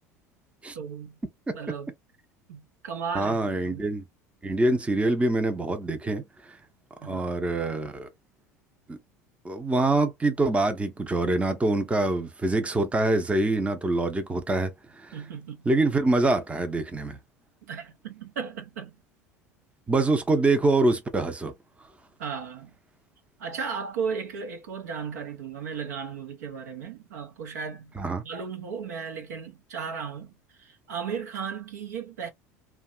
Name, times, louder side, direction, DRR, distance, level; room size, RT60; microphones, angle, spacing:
voice 1, 0.7-1.2 1.5-1.9 2.5-3.9 7.0-7.4 15.1-15.7 17.6-19.0 22.2-22.8 23.4-27.9 28.2-32.3, right 6 dB, 75° right, 0.7 m, -35 dB
voice 2, 3.1-4.0 4.4-6.5 7.0-8.1 8.9-9.0 9.4-15.2 15.6-17.2 19.9-21.5 28.0-28.2, right 2 dB, 15° right, 0.7 m, -25 dB
2.8 x 2.2 x 2.4 m
hypercardioid pair, 75°, 9 cm